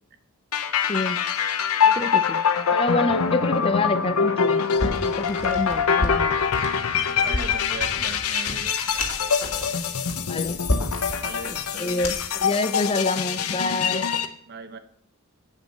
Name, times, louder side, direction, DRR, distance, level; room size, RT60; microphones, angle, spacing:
sound 1, 0.5-14.3, left 6 dB, 85° left, 0.8 m, -24 dB
voice 1, 0.9-1.2 1.8-2.4 2.7-4.7 5.0-6.4 10.3-10.6 11.4-14.1, left 3 dB, 25° left, 9 dB, 0.4 m, -27 dB
sound 2, 4.8-12.4, left 1 dB, 65° left, 2.2 m, -32 dB
voice 2, 7.0-9.0 11.2-12.1 14.5-14.8, right 3 dB, 45° right, 9 dB, 0.8 m, -38 dB
8.3 x 8.3 x 5.2 m, 0.69 s
head